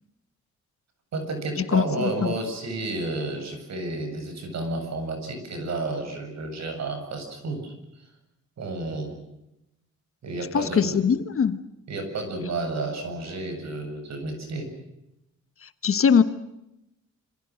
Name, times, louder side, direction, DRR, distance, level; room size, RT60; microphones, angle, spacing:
voice 1, 1.1-8.1 8.6-9.2 10.2-10.9 11.9-14.7, right 2 dB, 60° right, 6 dB, 7.9 m, -31 dB
voice 2, 1.7-2.3 10.5-11.6 15.6-16.2, left 7 dB, 45° left, 11 dB, 1.3 m, -22 dB
27.0 x 27.0 x 6.4 m, 0.88 s
wide cardioid pair, 175°, 30 cm